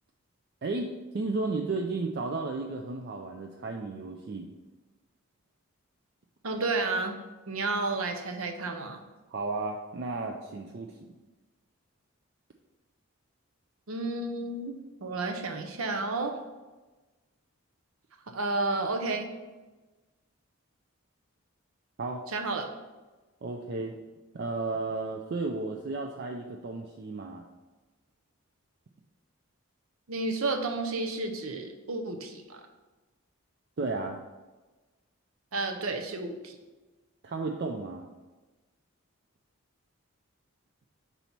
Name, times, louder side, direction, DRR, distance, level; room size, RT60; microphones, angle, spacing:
voice 1, 0.6-4.5 9.3-11.1 22.0-22.2 23.4-24.0 24.3-27.4 33.8-34.2 37.2-38.1, right 3 dB, 50° right, 2 dB, 0.4 m, -33 dB
voice 2, 6.4-7.2 7.5-9.0 13.9-14.7 15.0-16.4 18.3-19.3 22.3-22.7 30.1-32.6 35.5-36.6, right 3 dB, 80° right, 4 dB, 0.8 m, -31 dB
5.6 x 4.1 x 4.4 m, 1.2 s
head